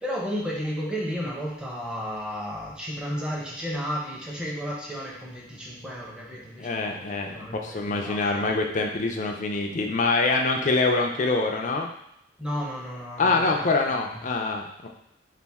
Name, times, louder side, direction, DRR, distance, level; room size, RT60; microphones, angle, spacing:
voice 1, 0.0-7.0 7.3-8.2 12.4-14.2, equal, 5° right, -4 dB, 0.7 m, -33 dB
voice 2, 6.6-11.9 13.2-14.9, left 3 dB, 40° left, 2 dB, 0.4 m, -25 dB
4.1 x 2.5 x 3.5 m, 0.76 s
head